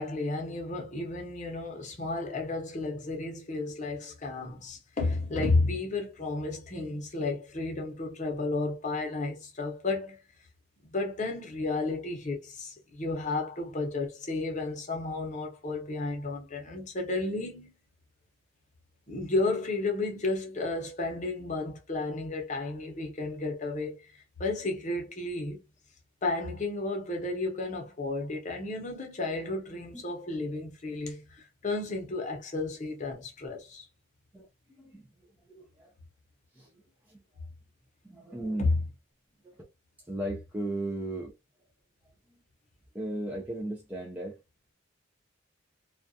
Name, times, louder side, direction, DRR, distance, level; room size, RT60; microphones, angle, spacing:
voice 1, 0.0-10.2 10.8-17.7 19.1-24.1 24.4-25.6 26.2-33.9 38.6-38.8, left 2 dB, 35° left, 0.7 m, -32 dB
voice 2, 34.3-35.1 35.5-35.9 36.5-36.7 37.1-37.2 38.0-38.7 39.4-39.7 40.1-41.3 42.3-42.4 42.9-44.4, right 1 dB, 10° right, 0.3 m, -36 dB
2.3 x 2.2 x 2.6 m
head